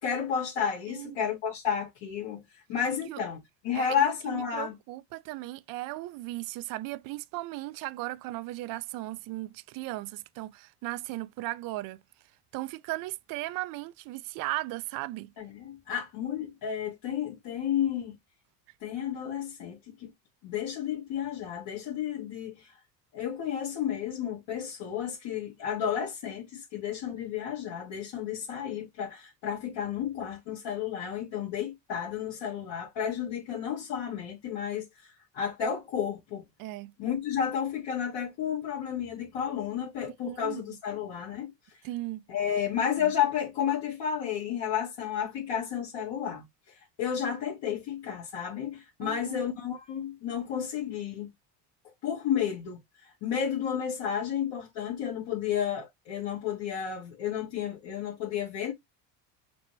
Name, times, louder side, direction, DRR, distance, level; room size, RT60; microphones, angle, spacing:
voice 1, 0.0-4.8 15.4-18.2 18.8-20.1 20.4-22.8 23.1-36.4 37.0-41.5 42.3-51.3 52.0-58.7, left 8 dB, 60° left, 1.8 m, -32 dB
voice 2, 3.7-12.0 12.5-15.3 36.6-36.9 40.2-40.6 41.8-42.2 43.0-43.1 49.0-49.4, right 18 dB, 45° right, 0.5 m, -37 dB
6.0 x 2.1 x 3.2 m
hypercardioid pair, 80°, 49 cm